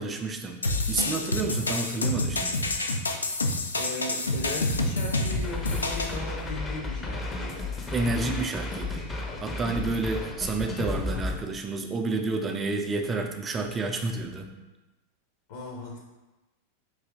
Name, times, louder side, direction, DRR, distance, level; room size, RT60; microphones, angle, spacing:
voice 1, 0.0-2.6 7.9-14.5, right 3 dB, 20° right, 5 dB, 0.5 m, -30 dB
sound 1, 0.6-6.2, left 2 dB, 75° left, 0.4 m, -28 dB
voice 2, 3.7-7.7 15.5-16.0, left 2 dB, 55° left, -1 dB, 0.8 m, -37 dB
sound 2, 5.3-11.4, left 2 dB, 20° left, 0.6 m, -33 dB
4.7 x 2.8 x 3.6 m, 1.1 s
figure-of-eight pair, 90°, 0 cm